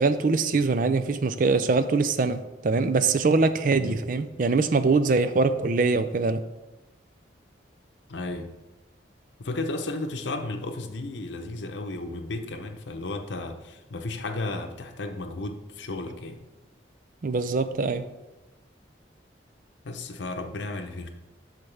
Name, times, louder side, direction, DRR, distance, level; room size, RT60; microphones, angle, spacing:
voice 1, 0.0-6.4 17.2-18.1, right 4 dB, 45° right, 11 dB, 0.4 m, -23 dB
voice 2, 8.1-8.5 9.4-16.4 19.8-21.1, left 2 dB, 75° left, 6 dB, 0.8 m, -34 dB
8.4 x 6.5 x 3.4 m, 1.0 s
head